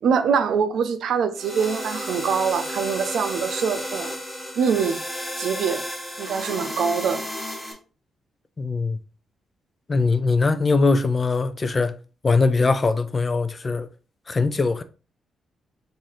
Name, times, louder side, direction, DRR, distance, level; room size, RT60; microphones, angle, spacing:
voice 1, 0.0-4.2 4.6-5.0 5.4-5.8 6.2-7.2, right 6 dB, 75° right, 0.5 m, -24 dB
sound 1, 1.3-7.7, equal, 5° left, 1.2 m, -32 dB
voice 2, 8.6-9.0 9.9-11.9 12.2-13.9 14.3-14.8, left 3 dB, 30° left, 0.4 m, -21 dB
3.8 x 2.6 x 3.0 m
cardioid pair, 90°, 0 cm